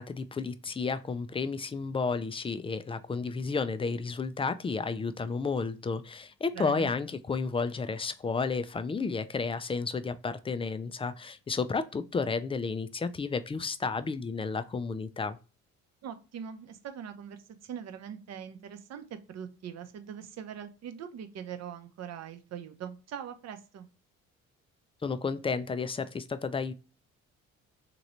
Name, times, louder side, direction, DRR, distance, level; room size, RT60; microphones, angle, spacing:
voice 1, 0.0-15.4 25.0-26.7, left 4 dB, 20° left, 0.3 m, -32 dB
voice 2, 6.5-6.9 16.0-23.9, right 8 dB, 55° right, 0.7 m, -42 dB
3.0 x 3.0 x 2.5 m
supercardioid pair, 70°, 30 cm